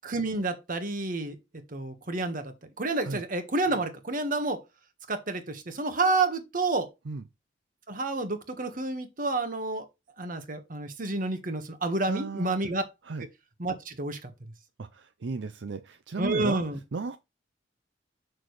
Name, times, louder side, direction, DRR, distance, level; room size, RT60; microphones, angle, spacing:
voice 1, 0.0-1.4 1.7-4.6 5.1-6.9 7.9-9.8 10.2-12.8 13.6-14.3 16.2-16.8, right 2 dB, 50° right, 1.3 m, -29 dB
voice 2, 12.1-12.5 13.0-13.3 14.8-16.6 16.9-17.2, right 4 dB, 70° right, 0.5 m, -34 dB
6.8 x 6.1 x 3.1 m
head